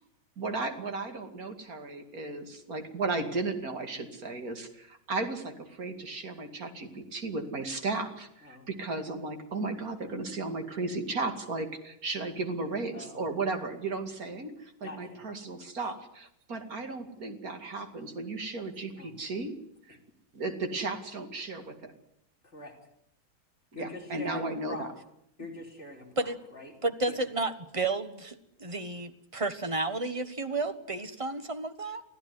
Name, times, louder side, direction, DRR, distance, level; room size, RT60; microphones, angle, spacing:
voice 1, 0.4-19.5 19.9-20.0 20.3-21.9 23.7-24.9, right 3 dB, 45° right, 6 dB, 2.8 m, -35 dB
voice 2, 12.9-13.2 14.8-15.2 18.9-19.1 22.4-22.7 23.7-24.9 25.4-26.7 27.1-27.2, left 2 dB, 30° left, 0 dB, 5.2 m, -43 dB
voice 3, 26.8-32.0, right 2 dB, 20° right, 10 dB, 1.0 m, -32 dB
24.5 x 15.0 x 9.7 m, 0.78 s
omnidirectional pair, 2.2 m